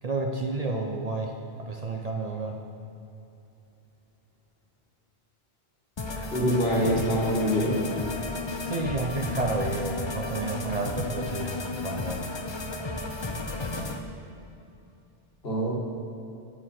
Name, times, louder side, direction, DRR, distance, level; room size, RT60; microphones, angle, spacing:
voice 1, 0.0-2.6 8.6-12.2, right 3 dB, 45° right, 2 dB, 0.6 m, -31 dB
sound 1, 6.0-14.0, left 3 dB, 35° left, 0.5 m, -33 dB
voice 2, 6.3-7.8 15.4-15.7, equal, 65° left, -4 dB, 1.9 m, -24 dB
8.9 x 8.7 x 4.3 m, 2.8 s
omnidirectional pair, 1.1 m